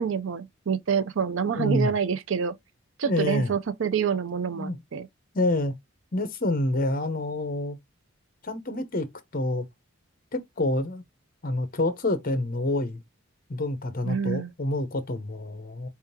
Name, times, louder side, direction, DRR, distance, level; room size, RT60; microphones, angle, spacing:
voice 1, 0.0-2.6 3.0-5.1 14.1-14.5, right 6 dB, 65° right, 0.5 m, -27 dB
voice 2, 1.6-1.9 3.0-3.5 4.4-4.8 5.3-5.7 6.1-7.8 8.4-9.7 10.3-11.0 11.4-13.0 13.5-15.9, left 1 dB, 45° left, 0.8 m, -27 dB
4.5 x 3.6 x 2.7 m
head